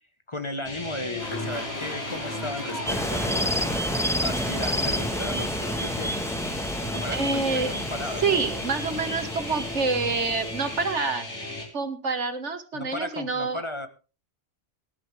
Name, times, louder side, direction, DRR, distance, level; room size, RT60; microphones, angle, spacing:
voice 1, 0.3-3.6 4.2-6.3 6.9-8.2 12.7-13.9, left 1 dB, 25° left, 9 dB, 1.4 m, -35 dB
sound 1, 0.7-11.7, left 1 dB, 85° left, 4.1 m, -36 dB
sound 2, 1.2-6.3, left 1 dB, 65° left, 6.1 m, -38 dB
sound 3, 2.9-10.9, equal, ahead, 1.4 m, -30 dB
voice 2, 7.1-7.7 8.2-11.5 11.7-13.6, right 4 dB, 90° right, 8 dB, 2.1 m, -27 dB
19.0 x 12.0 x 3.4 m, 0.33 s
omnidirectional pair, 1.2 m